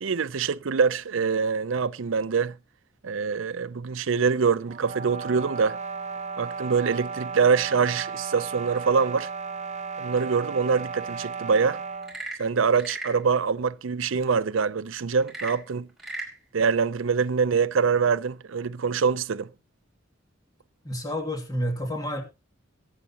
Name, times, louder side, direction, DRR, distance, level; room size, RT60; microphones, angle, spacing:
voice 1, 0.0-2.6 3.0-5.8 6.4-9.3 10.0-11.8 12.4-15.9 16.5-19.5, right 5 dB, 80° right, 0.5 m, -24 dB
sound 1, 4.7-12.2, right 5 dB, 35° right, 0.8 m, -35 dB
Frog / Percussion / Wood, 11.9-13.2 15.2-16.4, right 2 dB, ahead, 4.8 m, -36 dB
voice 2, 20.8-22.2, equal, 20° left, 2.6 m, -29 dB
22.0 x 8.0 x 2.9 m
head